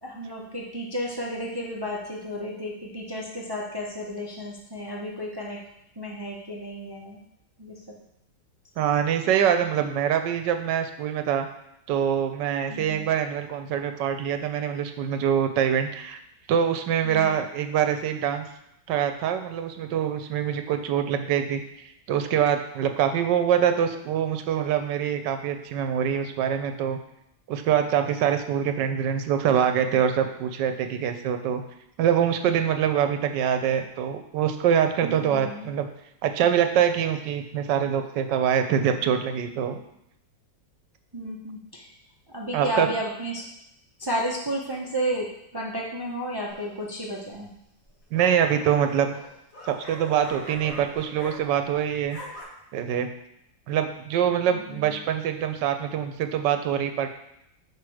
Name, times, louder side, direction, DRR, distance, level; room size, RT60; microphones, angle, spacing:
voice 1, 0.0-5.6 6.0-7.2 7.6-7.7 12.7-13.1 17.0-17.4 30.7-30.8 35.0-35.7 41.1-41.9 42.3-43.4 44.0-45.2 45.5-47.5 54.5-55.0, equal, 40° right, -3 dB, 0.3 m, -32 dB
voice 2, 8.8-11.5 11.9-16.2 16.5-18.5 18.9-27.0 27.5-31.6 32.0-35.9 36.2-39.8 42.5-42.9 48.1-49.1 49.7-52.2 52.7-53.1 53.7-57.1, right 8 dB, 75° right, 7 dB, 1.3 m, -24 dB
sound 1, 46.5-46.9 47.8-51.7 52.0-52.4, left 1 dB, 50° left, 1.7 m, -43 dB
6.1 x 5.0 x 4.8 m, 0.80 s
omnidirectional pair, 1.9 m